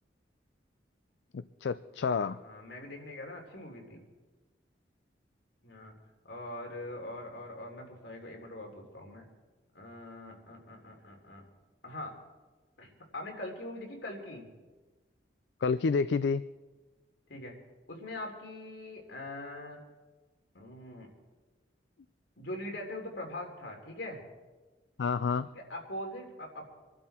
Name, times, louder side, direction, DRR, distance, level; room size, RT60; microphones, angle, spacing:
voice 1, 1.3-2.4 15.6-16.4 25.0-25.5, left 5 dB, 70° left, 14 dB, 0.4 m, -29 dB
voice 2, 1.9-4.0 5.6-5.9 6.2-9.3 9.7-11.4 11.8-12.1 12.8-14.5 17.3-17.5 17.9-19.8 20.5-21.1 22.4-24.2 25.4-26.7, left 1 dB, 85° left, 1 dB, 3.4 m, -42 dB
25.0 x 12.0 x 4.4 m, 1.2 s
head